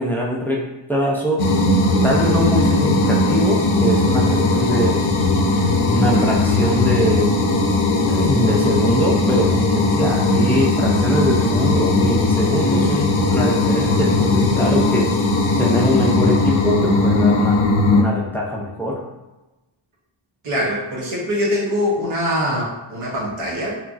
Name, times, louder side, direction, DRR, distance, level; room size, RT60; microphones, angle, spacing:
voice 1, 0.0-1.6 2.0-5.0 5.7-7.4 8.1-15.1 15.6-19.1, equal, 5° left, -3 dB, 0.4 m, -22 dB
sound 1, 1.4-18.0, left 2 dB, 75° left, 0.5 m, -18 dB
voice 2, 20.4-23.8, equal, 85° right, -5 dB, 0.9 m, -23 dB
3.0 x 2.5 x 2.3 m, 1.1 s
wide cardioid pair, 125°, 48 cm